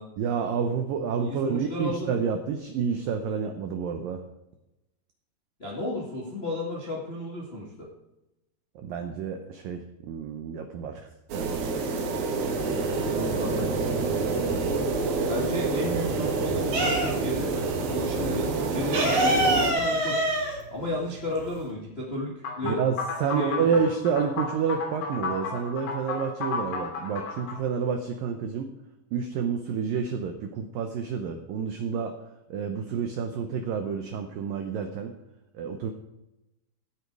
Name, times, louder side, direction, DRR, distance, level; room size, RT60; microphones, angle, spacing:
voice 1, 0.2-4.2 8.8-11.1 11.3-11.8 22.6-28.7 29.1-32.2 32.5-35.1 35.5-35.9, right 6 dB, 80° right, 6 dB, 2.0 m, -29 dB
voice 2, 1.3-2.1 5.6-7.9 13.1-14.1 15.3-20.2 20.7-22.8 23.3-23.6, left 1 dB, 45° left, -4 dB, 0.7 m, -33 dB
sound 1, 11.3-19.7, right 4 dB, 60° right, 3.0 m, -27 dB
sound 2, 11.6-12.4 12.7-14.7 15.1-17.5 17.7-17.9 18.1-21.7, right 1 dB, 45° right, 3.8 m, -26 dB
sound 3, 22.4-27.6, left 4 dB, 85° left, 5.3 m, -32 dB
16.0 x 8.5 x 4.8 m, 0.93 s
omnidirectional pair, 5.3 m